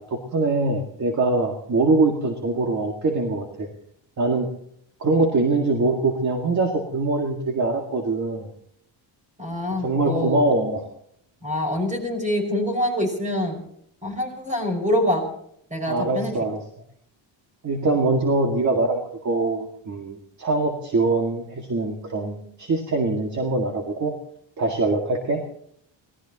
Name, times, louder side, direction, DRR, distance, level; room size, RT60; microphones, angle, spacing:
voice 1, 0.1-3.7 4.2-4.5 5.0-8.5 9.8-10.8 15.9-16.6 17.6-24.1 24.6-25.4, right 2 dB, 35° right, 3 dB, 2.0 m, -23 dB
voice 2, 9.4-10.4 11.4-13.6 14.0-15.3 15.7-16.3, left 1 dB, 15° right, 4 dB, 5.7 m, -25 dB
26.5 x 18.5 x 3.0 m, 0.68 s
cardioid pair, 125°, 46 cm